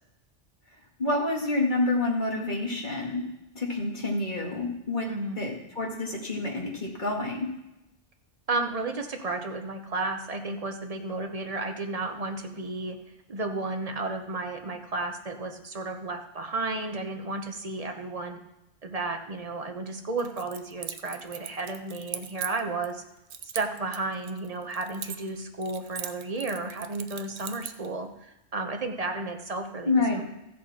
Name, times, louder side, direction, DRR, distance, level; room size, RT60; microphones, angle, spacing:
voice 1, 1.0-3.2 3.5-7.5 29.9-30.2, left 2 dB, 40° left, -1 dB, 2.3 m, -28 dB
voice 2, 5.1-5.4 8.5-13.0 13.3-18.4 18.8-23.0 23.5-30.2, right 3 dB, 35° right, 5 dB, 1.0 m, -33 dB
Keys jangling, 20.2-22.9 23.3-25.4 25.6-27.9, right 9 dB, 70° right, 0.9 m, -39 dB
14.5 x 7.6 x 4.3 m, 0.90 s
omnidirectional pair, 1.2 m